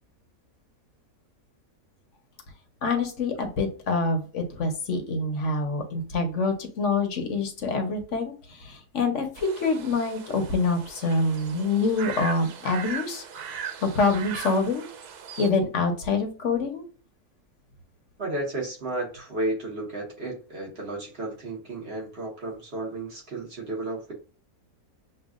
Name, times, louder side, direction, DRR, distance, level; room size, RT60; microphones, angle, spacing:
voice 1, 2.8-8.3 8.6-13.2 13.8-14.8 15.4-16.8, left 3 dB, 55° left, 4 dB, 1.1 m, -26 dB
sound 1, 9.4-15.5, right 7 dB, 90° right, 1.2 m, -39 dB
voice 2, 18.2-24.1, right 2 dB, 45° right, -2 dB, 1.3 m, -33 dB
6.8 x 2.3 x 2.4 m, 0.38 s
omnidirectional pair, 1.6 m